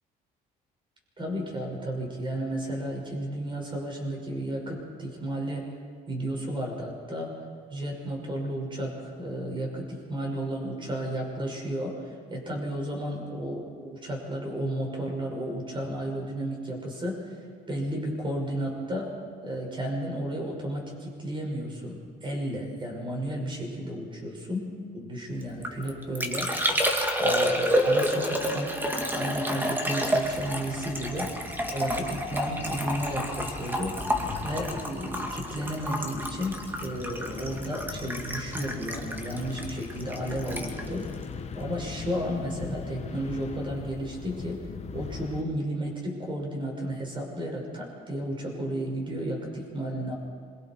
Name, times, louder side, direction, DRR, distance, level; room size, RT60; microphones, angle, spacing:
voice 1, 1.2-5.7 6.1-7.3 7.7-17.3 17.7-19.1 19.4-26.5 27.2-31.3 31.7-34.0 34.4-41.1 41.5-44.7 44.9-50.2, right 1 dB, 30° right, 0 dB, 6.0 m, -33 dB
Liquid, 25.4-42.0 42.3-42.8, equal, 10° right, 2.2 m, -30 dB
sound 1, 30.2-45.4, left 6 dB, 40° left, 1.3 m, -40 dB
26.0 x 23.0 x 4.7 m, 2.1 s
cardioid pair, 110°, 17 cm